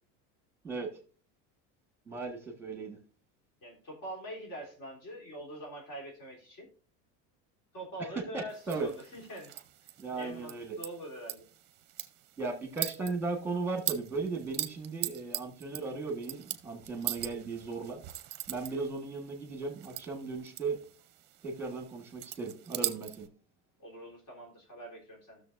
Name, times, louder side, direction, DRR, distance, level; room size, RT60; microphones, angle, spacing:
voice 1, 2.1-3.0 8.1-8.9 10.0-10.7 12.4-18.0 18.5-20.8 21.4-23.3, right 4 dB, 5° right, 3 dB, 1.4 m, -36 dB
voice 2, 3.6-6.7 7.7-9.5 10.1-11.5 23.8-25.4, right 1 dB, 55° left, -1 dB, 3.5 m, -44 dB
sound 1, 8.5-23.3, right 14 dB, 35° right, 0.6 m, -41 dB
15.5 x 6.6 x 2.5 m, 0.38 s
cardioid pair, 175°, 32 cm